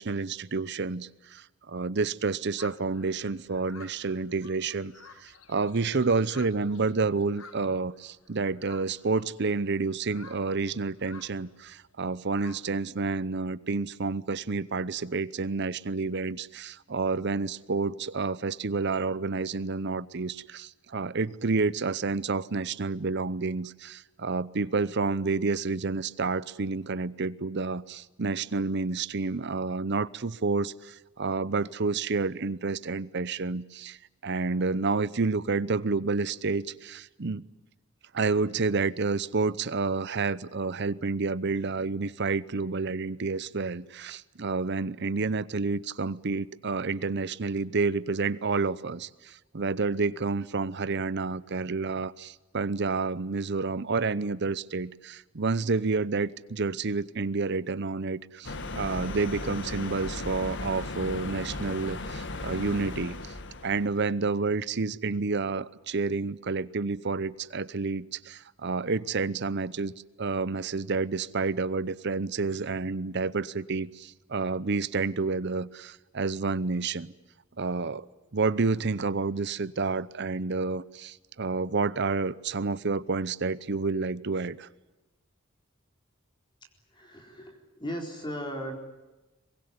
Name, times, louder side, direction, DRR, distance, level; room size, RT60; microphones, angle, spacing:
voice 1, 0.0-4.9 5.2-34.0 34.2-37.4 38.1-63.2 63.6-69.9 70.2-77.1 77.6-78.1 78.3-84.7, right 4 dB, 55° right, 18 dB, 0.8 m, -29 dB
sound 1, 2.6-13.2, left 5 dB, 85° left, 1.6 m, -53 dB
sound 2, 58.4-64.0, left 2 dB, 60° left, 1.7 m, -36 dB
voice 2, 86.9-88.7, equal, 25° left, 3 dB, 4.2 m, -37 dB
23.5 x 22.0 x 9.7 m, 1.1 s
head